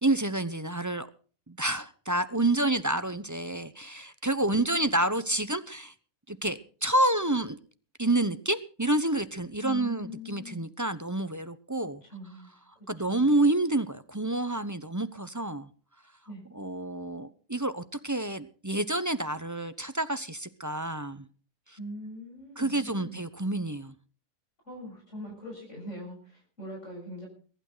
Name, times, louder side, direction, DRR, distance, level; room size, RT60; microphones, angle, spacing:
voice 1, 0.0-1.1 1.5-5.9 6.3-7.6 8.0-12.0 12.9-15.7 16.5-21.3 22.6-23.9, right 2 dB, 15° right, 12 dB, 0.7 m, -28 dB
voice 2, 9.6-10.7 12.0-12.5 13.0-13.4 16.3-16.4 21.8-23.2 24.6-27.3, equal, 55° left, 0 dB, 6.9 m, -42 dB
22.5 x 12.0 x 4.0 m, 0.40 s
omnidirectional pair, 1.5 m